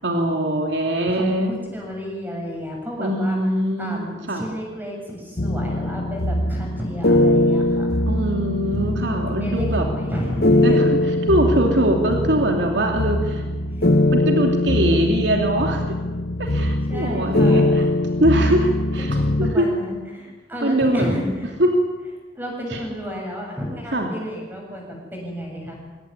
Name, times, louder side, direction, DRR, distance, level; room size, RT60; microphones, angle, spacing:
voice 1, 0.0-1.5 3.0-4.5 8.1-9.9 10.6-10.9 11.3-13.4 14.1-15.8 16.4-17.9 18.2-19.7 20.6-21.3 21.6-21.7 22.7-22.8 23.9-24.1, right 1 dB, 85° right, 2 dB, 3.0 m, -22 dB
voice 2, 1.1-3.4 3.8-7.9 9.4-10.8 16.9-17.9 19.1-21.5 22.4-25.8, equal, 10° right, -1 dB, 7.4 m, -32 dB
sound 1, 5.4-19.5, left 1 dB, 55° left, 1.0 m, -21 dB
23.5 x 17.5 x 9.8 m, 1.2 s
head